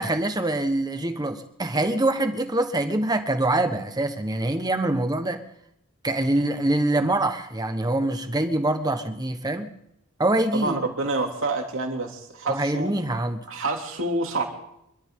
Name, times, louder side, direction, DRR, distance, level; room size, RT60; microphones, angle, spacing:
voice 1, 0.0-5.4 6.0-9.7 10.2-10.8 12.5-13.4, right 1 dB, 15° right, 7 dB, 1.3 m, -24 dB
voice 2, 10.5-13.0 13.5-14.4, right 2 dB, 60° right, 1 dB, 3.1 m, -28 dB
26.0 x 13.0 x 3.9 m, 0.80 s
head